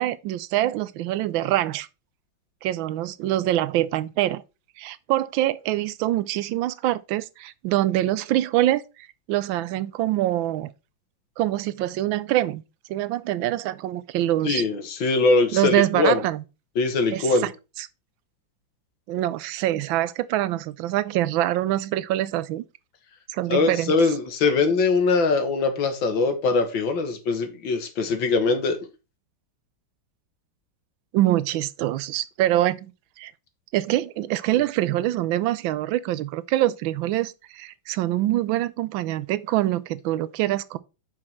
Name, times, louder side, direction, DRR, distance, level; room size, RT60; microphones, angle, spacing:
voice 1, 0.0-1.9 2.6-4.4 4.8-10.7 11.4-12.6 12.9-14.6 15.5-16.4 17.1-17.5 17.8-17.9 19.1-22.6 23.3-24.0 31.1-32.9 33.2-33.3 33.7-40.8, right 14 dB, 85° right, 1.4 m, -24 dB
voice 2, 14.4-16.2 16.8-17.5 23.5-28.8, left 3 dB, 75° left, 2.1 m, -22 dB
6.3 x 5.7 x 4.4 m
omnidirectional pair, 2.1 m